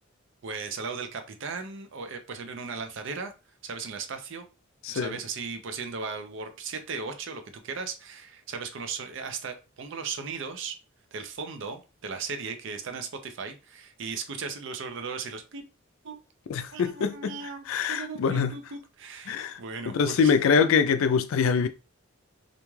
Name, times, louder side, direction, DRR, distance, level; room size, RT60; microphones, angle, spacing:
voice 1, 0.4-3.3 3.6-4.5 4.9-10.7 11.1-15.6 16.0-16.1 16.7-20.4, right 5 dB, 60° right, 0.5 m, -37 dB
voice 2, 4.8-5.2 16.5-17.4 17.7-18.6 19.3-19.6 19.9-21.7, left 6 dB, 70° left, 0.3 m, -24 dB
2.5 x 2.2 x 3.1 m
head